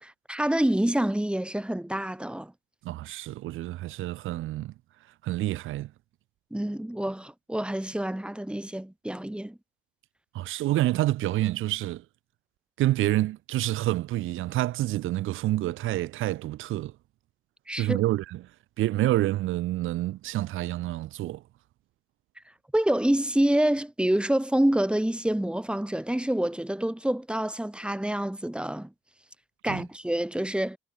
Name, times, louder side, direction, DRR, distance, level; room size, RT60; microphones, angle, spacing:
voice 1, 0.0-2.5 6.5-9.6 17.7-18.0 22.7-28.9 29.6-30.8, right 1 dB, 5° right, 3.7 m, -27 dB
voice 2, 2.8-4.7 5.2-5.9 10.3-12.0 12.8-16.9 17.7-18.4 18.8-21.4 29.6-29.8, right 15 dB, 90° right, 4.7 m, -28 dB
cardioid pair, 90°, 20 cm